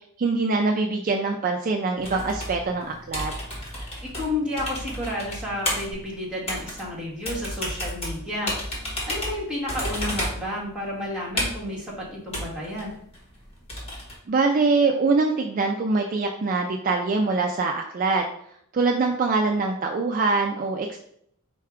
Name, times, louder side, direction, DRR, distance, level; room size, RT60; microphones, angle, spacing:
voice 1, 0.2-3.3 14.3-18.2 18.7-21.0, right 3 dB, 40° right, 3 dB, 0.4 m, -23 dB
sound 1, 2.0-14.1, equal, 25° left, 1.5 m, -32 dB
voice 2, 4.0-8.5 9.1-13.0, left 1 dB, 5° right, -6 dB, 1.5 m, -31 dB
4.6 x 2.3 x 4.8 m, 0.68 s
head